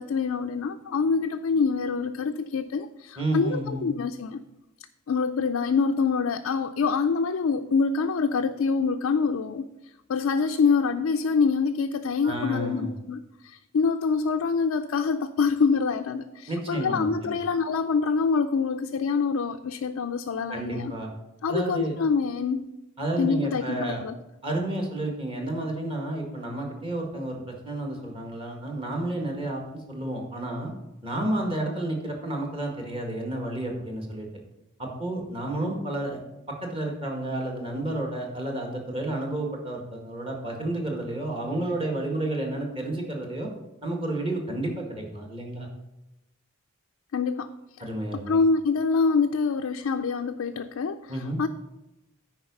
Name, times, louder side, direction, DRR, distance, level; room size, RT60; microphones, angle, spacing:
voice 1, 0.0-4.4 5.1-20.9 21.4-22.7 23.2-24.2 47.1-47.5 48.3-51.1 51.4-51.5, left 5 dB, 75° left, 5 dB, 0.4 m, -25 dB
voice 2, 3.2-3.9 12.2-12.9 16.5-17.4 20.5-21.1 21.5-21.9 23.0-24.0 24.4-29.6 29.9-30.7 31.0-34.3 34.8-36.2 36.5-43.5 43.8-45.7 47.8-48.4 51.1-51.4, right 1 dB, 25° right, 1 dB, 1.8 m, -31 dB
9.5 x 4.8 x 5.4 m, 0.93 s
head